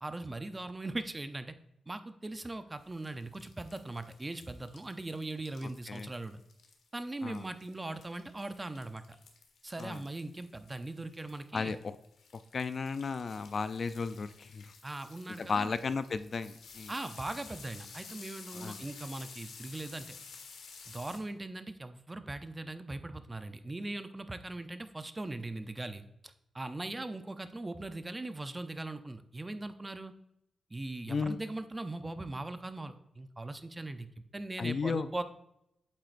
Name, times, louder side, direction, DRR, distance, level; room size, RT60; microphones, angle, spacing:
voice 1, 0.0-1.5 1.9-6.4 6.9-9.2 9.6-11.7 14.8-15.7 16.9-20.1 20.9-30.1 30.7-34.1 34.3-35.2, right 2 dB, 20° right, 10 dB, 0.6 m, -40 dB
sound 1, 2.8-21.2, left 5 dB, 90° left, 1.5 m, -53 dB
voice 2, 11.5-12.0 12.5-14.7 15.4-16.9 18.5-18.8 31.1-31.4 34.6-35.1, left 5 dB, 45° left, 12 dB, 0.4 m, -34 dB
8.8 x 7.7 x 2.6 m, 0.82 s
wide cardioid pair, 125°, 0 cm